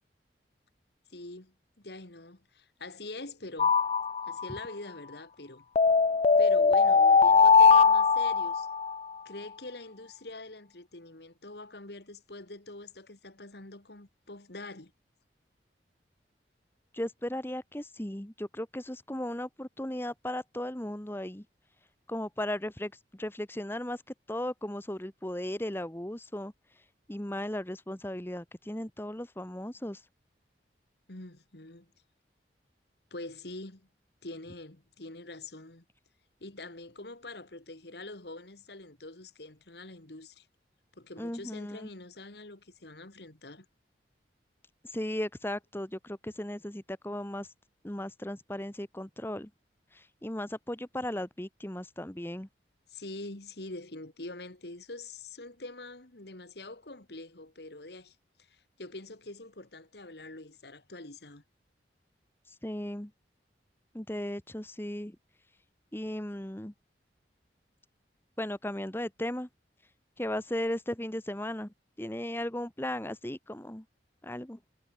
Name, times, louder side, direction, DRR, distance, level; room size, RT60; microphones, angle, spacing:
voice 1, 1.1-3.8 4.3-5.6 6.4-8.7 9.2-14.9 31.1-31.9 33.1-33.9 34.2-35.8 36.4-40.5 41.0-43.7 52.9-58.2 58.5-61.4, left 2 dB, 65° left, 2.4 m, -45 dB
sound 1, 3.6-4.6 5.8-9.0, left 5 dB, 35° left, 0.3 m, -21 dB
voice 2, 16.9-21.4 22.1-24.0 24.3-26.5 27.1-30.0 41.2-41.8 44.8-47.5 47.8-49.5 49.9-52.5 62.6-63.1 63.9-65.2 65.9-66.7 68.4-69.5 70.2-73.8 74.2-74.6, left 1 dB, 10° left, 1.2 m, -36 dB
head